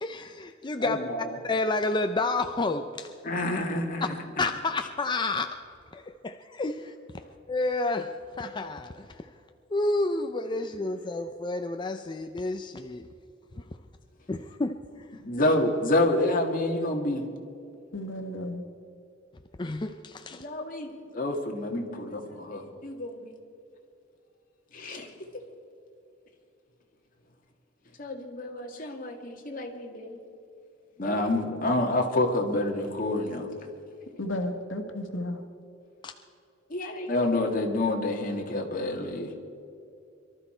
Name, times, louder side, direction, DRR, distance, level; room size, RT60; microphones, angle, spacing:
voice 1, 0.0-1.0 1.4-3.1 4.4-5.6 5.9-6.9 7.5-9.1 9.7-13.0 14.3-14.8 19.6-20.4 36.0-36.1, left 2 dB, 25° left, 6 dB, 0.5 m, -30 dB
voice 2, 0.8-1.4 3.2-4.4 15.2-17.2 20.3-23.4 24.7-25.1 28.0-30.2 31.0-33.5 36.7-39.3, left 1 dB, 45° left, 2 dB, 1.9 m, -28 dB
voice 3, 17.9-18.6 34.2-35.4, left 1 dB, 85° left, 5 dB, 1.5 m, -33 dB
23.5 x 12.5 x 4.4 m, 2.7 s
head